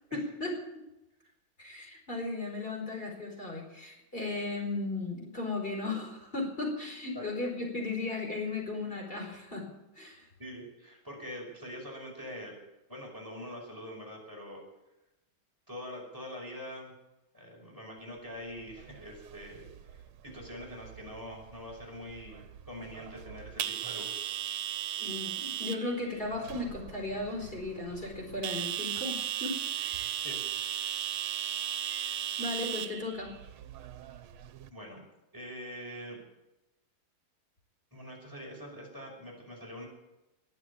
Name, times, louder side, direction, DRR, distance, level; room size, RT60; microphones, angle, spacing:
voice 1, 0.1-0.5 1.6-9.7 9.9-10.3 25.0-30.1 31.8-33.4, left 2 dB, 25° left, -1 dB, 4.7 m, -36 dB
voice 2, 10.4-12.6 12.9-14.6 15.7-16.9 17.3-24.3 30.2-30.5 34.7-35.0 35.3-36.2 37.9-39.9, equal, 10° right, -2 dB, 5.6 m, -44 dB
sound 1, 18.6-34.7, right 10 dB, 80° right, 1.7 m, -38 dB
21.5 x 7.9 x 8.6 m, 0.94 s
omnidirectional pair, 2.3 m